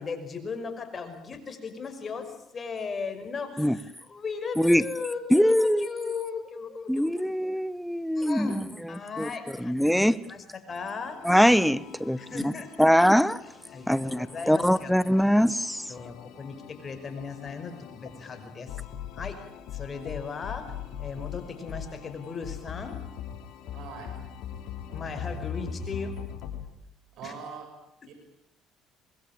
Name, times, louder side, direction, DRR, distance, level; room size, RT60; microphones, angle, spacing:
voice 1, 0.0-7.1 8.2-11.2 12.2-12.9 13.7-14.9 15.2-15.3 15.9-18.8 19.2-19.4 19.7-23.0 24.8-26.2 27.2-27.3, left 5 dB, 35° left, 5.6 m, -37 dB
voice 2, 5.3-5.9 6.9-8.6 9.2-9.3 9.6-10.2 11.2-12.5 12.8-13.4 13.9-15.9, equal, ahead, 1.1 m, -22 dB
sound 1, 10.7-26.7, left 8 dB, 75° left, 3.3 m, -41 dB
voice 3, 23.7-24.1 27.1-27.7 28.0-28.1, right 6 dB, 65° right, 7.1 m, -41 dB
25.0 x 21.0 x 8.9 m
cardioid pair, 95°, 0 cm